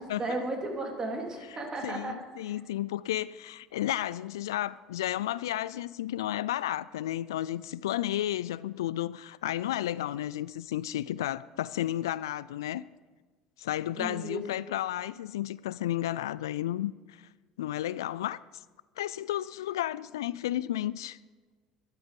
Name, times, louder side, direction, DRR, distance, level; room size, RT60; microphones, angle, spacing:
voice 1, 0.0-2.2 2.4-2.5 13.9-14.4, right 2 dB, 30° right, 3.5 m, -34 dB
voice 2, 1.8-12.8 13.6-17.2 17.6-18.4 19.0-21.2, left 13 dB, 85° left, 0.3 m, -32 dB
13.0 x 11.5 x 5.2 m
hypercardioid pair, 70°, 2 cm